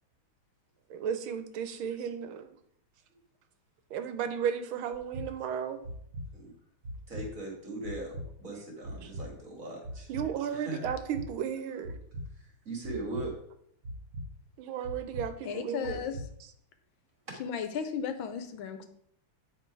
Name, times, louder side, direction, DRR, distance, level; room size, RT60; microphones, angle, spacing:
voice 1, 0.9-2.5 3.9-5.8 10.1-12.0 14.6-16.1, right 8 dB, 85° right, 9 dB, 1.6 m, -34 dB
sound 1, 4.9-5.3 5.8-6.3 6.8-7.3 7.8-8.3 8.8-9.3 9.8-10.3 10.8-11.3 11.8-12.3 12.8-13.3 13.8-14.3 14.8-15.3 15.8-16.3, equal, 60° right, 1.6 m, -39 dB
voice 2, 7.1-8.1 8.4-10.1 10.5-10.8 12.4-13.3, right 2 dB, 45° right, 0 dB, 2.1 m, -39 dB
voice 3, 15.4-16.2 17.4-18.9, left 7 dB, 80° left, 9 dB, 1.5 m, -35 dB
8.9 x 3.7 x 4.7 m, 0.70 s
omnidirectional pair, 2.2 m